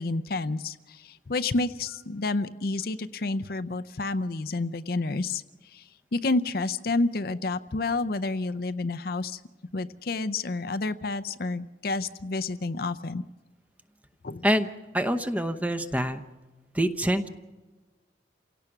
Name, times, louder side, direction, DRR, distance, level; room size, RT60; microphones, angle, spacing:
voice 1, 0.0-5.4 5.7-5.8 6.1-9.4 9.7-13.2 14.2-14.4, left 3 dB, 50° left, 11 dB, 0.6 m, -29 dB
voice 2, 14.4-16.2 16.7-17.3, equal, 10° right, 9 dB, 0.8 m, -26 dB
28.5 x 17.5 x 6.0 m, 1.2 s
head